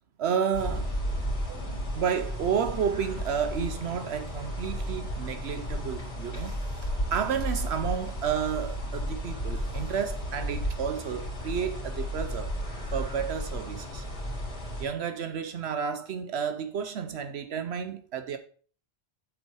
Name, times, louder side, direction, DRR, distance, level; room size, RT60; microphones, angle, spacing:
voice 1, 0.2-0.9 1.5-1.6 1.9-12.5 12.9-14.0 14.8-18.4, right 7 dB, 75° right, 0.9 m, -31 dB
sound 1, 0.5-14.8, equal, 75° left, 3.0 m, -33 dB
7.6 x 7.3 x 4.6 m
omnidirectional pair, 1.1 m